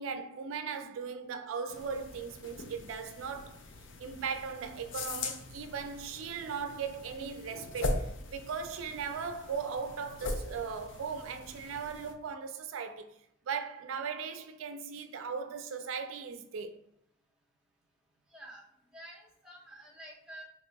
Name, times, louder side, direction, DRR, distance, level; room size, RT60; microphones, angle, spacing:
voice 1, 0.0-3.6 4.0-13.1 13.5-16.8, right 6 dB, 80° right, 0.4 m, -38 dB
sound 1, 1.7-12.1, left 2 dB, 65° left, 0.5 m, -41 dB
voice 2, 18.3-18.6 18.9-20.4, right 1 dB, 5° right, 0.9 m, -49 dB
2.9 x 2.3 x 3.9 m
head